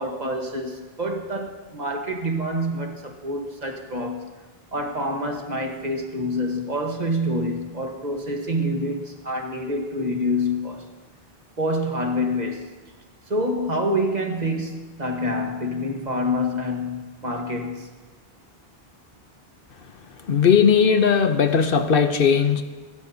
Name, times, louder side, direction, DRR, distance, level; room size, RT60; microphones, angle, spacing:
voice 1, 0.0-4.3 4.7-10.9 11.6-12.7 13.3-17.9, left 1 dB, 45° right, 1.5 m, -27 dB
voice 2, 20.2-22.6, left 6 dB, 65° left, 1.0 m, -18 dB
26.0 x 12.0 x 2.8 m
omnidirectional pair, 1.0 m